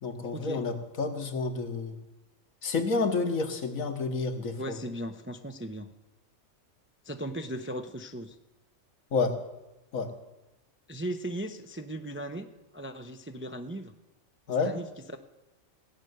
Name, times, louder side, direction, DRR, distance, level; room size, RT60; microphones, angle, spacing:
voice 1, 0.0-2.0 2.6-4.8 9.1-9.4 9.9-10.1 14.5-14.8, left 4 dB, 85° left, 5 dB, 1.8 m, -29 dB
voice 2, 4.6-5.9 7.0-8.4 10.9-12.5 12.7-13.9 14.6-15.2, right 1 dB, 15° right, 7 dB, 0.4 m, -37 dB
16.0 x 6.7 x 9.4 m, 1.0 s
omnidirectional pair, 1.4 m